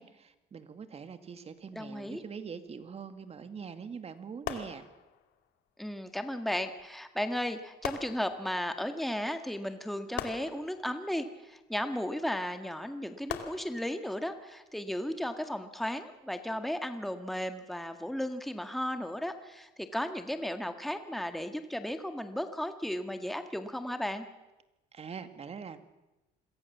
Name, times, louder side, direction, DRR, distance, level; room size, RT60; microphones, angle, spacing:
voice 1, 0.0-4.8 24.9-25.8, right 6 dB, 35° right, 10 dB, 2.3 m, -43 dB
voice 2, 1.7-2.2 5.8-24.3, equal, ahead, 7 dB, 1.8 m, -35 dB
sound 1, 4.5-5.5 6.8-6.9 7.8-8.8 10.2-11.5 13.3-14.3 15.0-15.3, left 10 dB, 80° left, 2.5 m, -42 dB
27.0 x 22.5 x 7.3 m, 1.0 s
cardioid pair, 110°, 17 cm